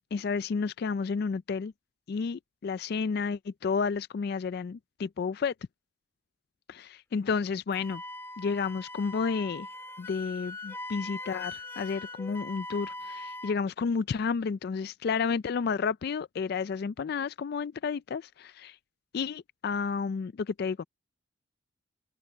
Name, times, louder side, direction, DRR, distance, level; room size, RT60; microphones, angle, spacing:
voice 1, 0.1-1.7 2.1-5.5 6.7-8.0 8.4-9.7 10.0-18.8 19.1-20.8, left 5 dB, 50° left, 0.3 m, -31 dB
Wind instrument woodwind instrument, 7.7-13.5, left 2 dB, 10° left, 2.3 m, -41 dB
open air
head